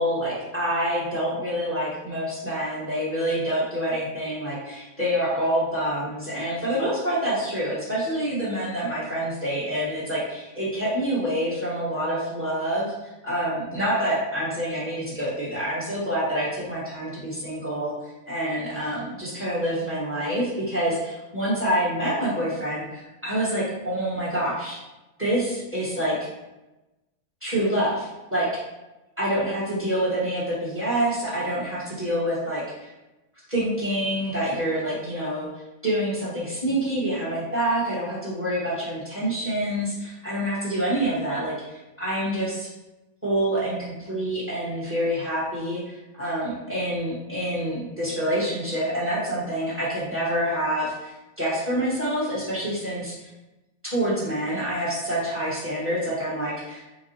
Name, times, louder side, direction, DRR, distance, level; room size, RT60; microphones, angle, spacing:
voice 1, 0.0-17.9 18.3-24.8 25.2-26.1 27.4-28.6 29.2-32.9 33.5-35.5 35.8-42.7 43.2-53.3 53.8-56.8, right 1 dB, 10° right, -8 dB, 1.3 m, -27 dB
4.0 x 2.3 x 4.2 m, 1.0 s
omnidirectional pair, 1.5 m